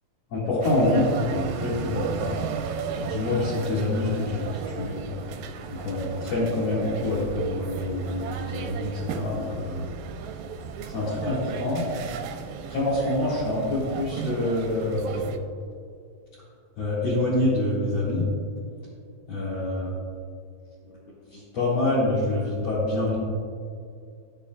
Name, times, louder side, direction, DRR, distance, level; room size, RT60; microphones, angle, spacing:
voice 1, 0.3-2.4 3.0-4.5 4.8-5.0 5.8-9.8 10.9-11.9 12.7-15.3 16.8-18.2 19.3-19.9 21.3-23.2, left 2 dB, 60° left, -11 dB, 2.9 m, -26 dB
sound 1, 0.6-15.4, right 6 dB, 90° right, 2.0 m, -35 dB
15.0 x 6.8 x 2.3 m, 2.3 s
omnidirectional pair, 3.4 m